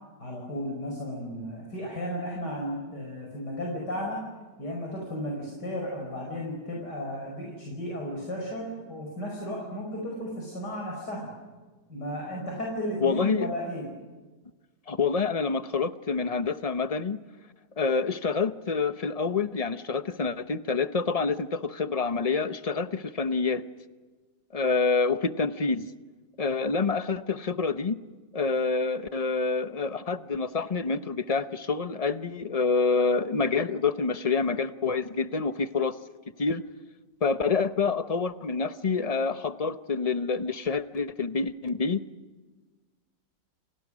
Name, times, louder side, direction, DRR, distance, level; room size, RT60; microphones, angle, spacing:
voice 1, 0.2-4.2 4.6-11.3 11.9-13.9, equal, 65° left, -1 dB, 5.8 m, -34 dB
voice 2, 13.0-13.5 14.9-17.2 17.8-23.6 24.5-25.9 26.4-28.0 28.3-36.0 36.4-36.6 37.2-42.0, left 4 dB, 35° left, 11 dB, 0.6 m, -27 dB
29.5 x 29.0 x 6.3 m, 1.3 s
omnidirectional pair, 1.9 m